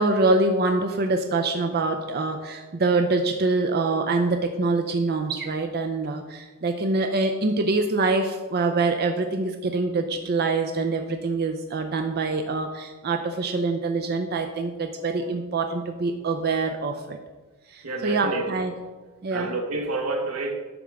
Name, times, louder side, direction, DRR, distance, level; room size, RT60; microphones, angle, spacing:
voice 1, 0.0-17.2 17.7-18.7 19.2-19.5, right 3 dB, 45° right, 5 dB, 0.5 m, -25 dB
voice 2, 17.8-18.6 19.3-20.5, right 2 dB, 90° right, 3 dB, 1.3 m, -29 dB
9.8 x 3.5 x 6.2 m, 1.2 s
head